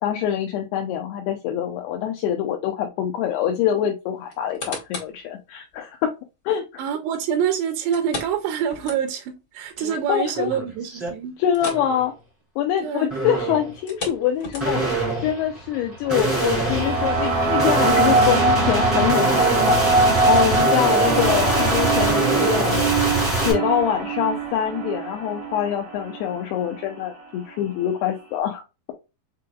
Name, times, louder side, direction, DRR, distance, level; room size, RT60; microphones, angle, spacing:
voice 1, 0.0-6.1 6.5-6.8 10.1-10.5 11.4-12.1 12.6-14.8 15.2-19.8 20.3-22.9 23.5-28.6, left 10 dB, 80° left, 2.6 m, -24 dB
sound 1, 4.3-5.2 5.7-5.8 7.9-9.4 9.7-9.8 10.3-10.4 11.5-11.9 12.2-12.4 13.7-15.0 15.6-15.7, left 3 dB, 45° left, 1.4 m, -35 dB
voice 2, 6.8-11.4 12.8-13.1, right 8 dB, 80° right, 2.6 m, -26 dB
sound 2, 9.8-9.9 10.4-11.1 11.6-12.0 13.1-13.7 14.6-23.5, right 2 dB, 5° right, 1.0 m, -24 dB
sound 3, 16.0-26.3, right 3 dB, 65° right, 1.2 m, -22 dB
6.8 x 3.1 x 2.3 m
omnidirectional pair, 5.0 m